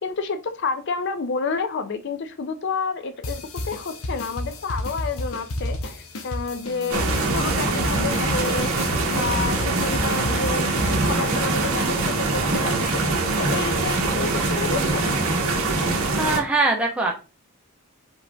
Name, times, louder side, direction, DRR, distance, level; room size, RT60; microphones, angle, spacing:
voice 1, 0.0-7.0 7.3-8.7 9.1-10.7 11.0-13.0 13.4-15.2, left 4 dB, 50° left, 9 dB, 0.4 m, -29 dB
sound 1, 3.2-11.4, left 1 dB, 70° left, 0.8 m, -31 dB
sound 2, 6.6-10.1 10.5-13.5, equal, 25° right, 1.5 m, -40 dB
sound 3, 6.9-16.4, right 3 dB, 70° right, 1.2 m, -23 dB
voice 2, 16.2-17.1, right 3 dB, 5° right, -1 dB, 0.9 m, -22 dB
4.9 x 3.2 x 3.3 m, 0.32 s
head